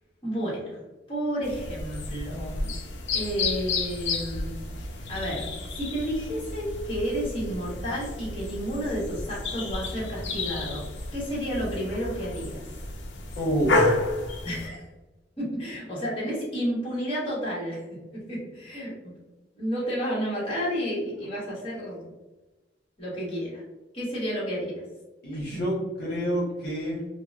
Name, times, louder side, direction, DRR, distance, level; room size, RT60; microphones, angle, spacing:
voice 1, 0.2-0.8 1.1-2.7 3.1-4.5 4.9-10.8 11.1-12.6 14.4-14.8 15.4-17.8 18.1-19.1 19.6-22.0 23.0-23.6 23.9-24.7, equal, 30° left, -7 dB, 1.3 m, -31 dB
sound 1, 1.4-14.7, left 2 dB, 70° left, 0.6 m, -31 dB
voice 2, 13.4-13.9 25.2-27.1, right 1 dB, 55° left, -5 dB, 1.2 m, -28 dB
4.8 x 2.1 x 2.4 m, 1.1 s
head